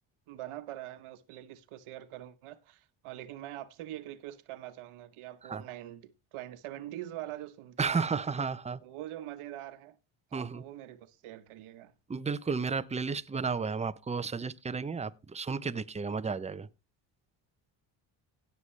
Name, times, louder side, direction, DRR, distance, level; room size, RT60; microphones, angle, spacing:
voice 1, 0.3-8.1 8.8-10.0 10.3-11.9, right 13 dB, 75° right, 1.1 m, -44 dB
voice 2, 7.8-8.8 10.3-10.6 12.1-16.7, right 5 dB, 15° right, 0.6 m, -33 dB
16.5 x 6.9 x 3.2 m
cardioid pair, 80°, 50 cm